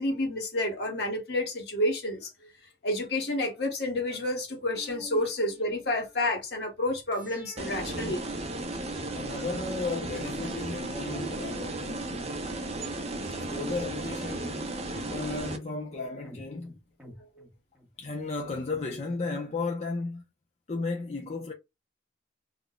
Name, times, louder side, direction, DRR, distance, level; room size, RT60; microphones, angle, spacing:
voice 1, 0.0-2.3 2.8-8.2, left 1 dB, 60° left, 1.1 m, -29 dB
sound 1, 4.8-6.3 7.1-9.2 10.2-12.4 13.2-15.6 16.2-17.9 18.2-18.3, equal, 5° right, 0.8 m, -47 dB
sound 2, 7.6-15.6, right 2 dB, 35° right, 0.5 m, -35 dB
voice 2, 9.1-12.1 13.3-16.8 18.0-20.2 20.7-21.5, left 3 dB, 35° left, 0.4 m, -34 dB
2.4 x 2.0 x 3.7 m
head